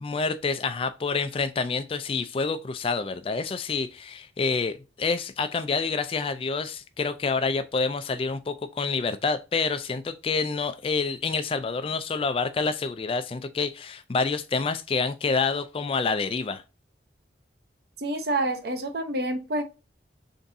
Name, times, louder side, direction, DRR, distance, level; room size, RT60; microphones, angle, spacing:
voice 1, 0.0-16.6, left 4 dB, 30° left, 0.3 m, -28 dB
voice 2, 18.0-19.6, right 1 dB, 55° right, 0.8 m, -28 dB
4.0 x 3.5 x 2.6 m
head